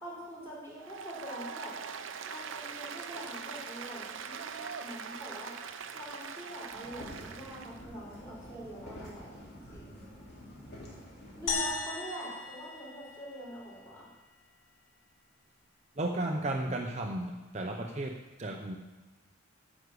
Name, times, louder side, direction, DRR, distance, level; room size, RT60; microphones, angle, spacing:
voice 1, 0.0-1.7 2.3-5.7 5.9-9.4 9.7-10.1 11.4-14.1, equal, 15° left, -6 dB, 4.2 m, -44 dB
Applause, 0.8-7.8, right 6 dB, 70° right, 0.7 m, -42 dB
sound 1, 6.7-11.7, equal, 50° left, 3.0 m, -48 dB
sound 2, 11.5-13.9, left 4 dB, 70° left, 1.1 m, -37 dB
voice 2, 16.0-18.8, right 1 dB, 35° right, 1 dB, 0.7 m, -34 dB
9.9 x 6.2 x 8.1 m, 1.2 s
head